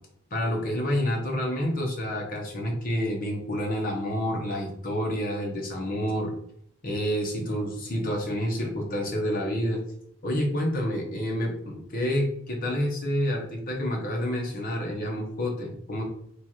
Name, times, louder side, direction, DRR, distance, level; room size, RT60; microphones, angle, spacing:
voice 1, 0.3-6.3 6.8-9.8 10.2-16.0, equal, 45° left, 0 dB, 0.9 m, -28 dB
3.1 x 2.3 x 4.2 m, 0.70 s
head